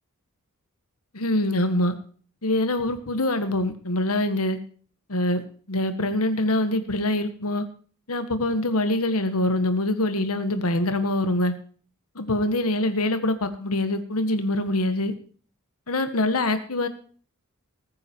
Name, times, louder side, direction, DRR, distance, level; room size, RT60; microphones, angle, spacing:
voice 1, 1.1-1.9 2.4-4.6 5.1-5.4 5.7-7.6 8.1-11.5 12.1-15.1 15.9-16.9, left 1 dB, 70° left, 9 dB, 1.5 m, -24 dB
20.0 x 9.6 x 4.6 m, 0.43 s
head